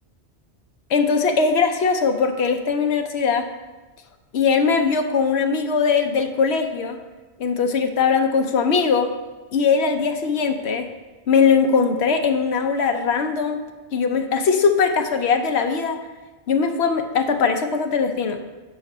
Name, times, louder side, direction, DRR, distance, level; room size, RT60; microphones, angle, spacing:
voice 1, 0.9-3.5 4.3-7.0 7.4-9.1 9.5-10.9 11.3-13.6 13.9-16.0 16.5-18.4, left 5 dB, 90° left, 5 dB, 1.0 m, -20 dB
7.5 x 5.2 x 7.2 m, 1.2 s
omnidirectional pair, 1.1 m